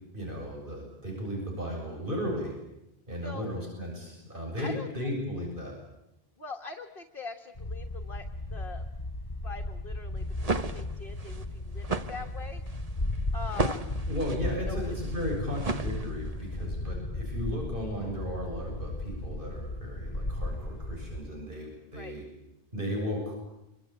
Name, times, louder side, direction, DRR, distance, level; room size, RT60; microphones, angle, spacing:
voice 1, 0.1-2.5 3.1-5.8 14.1-22.2 22.7-23.3, equal, 55° right, -1 dB, 7.9 m, -35 dB
voice 2, 3.2-3.5 4.6-4.9 6.4-8.8 9.4-12.6 13.3-13.9 14.6-14.9 21.9-22.2, left 4 dB, 60° left, 5 dB, 1.7 m, -43 dB
sound 1, 7.6-21.2, left 2 dB, 40° left, 4.3 m, -35 dB
sound 2, 10.2-16.5, right 2 dB, 35° right, 1.4 m, -35 dB
27.0 x 24.5 x 8.9 m, 0.87 s
omnidirectional pair, 1.0 m